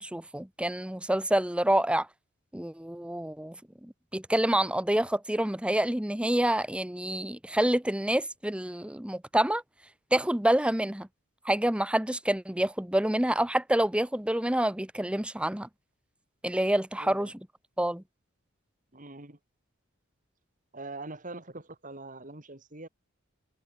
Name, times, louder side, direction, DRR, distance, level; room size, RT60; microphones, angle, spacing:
voice 1, 0.0-2.1 2.5-3.5 3.8-9.6 10.1-11.1 11.4-15.7 16.4-17.3 17.8-18.0, right 1 dB, 5° right, 0.7 m, -27 dB
voice 2, 16.9-17.3 18.9-19.4 20.7-22.9, right 2 dB, 40° right, 2.9 m, -43 dB
head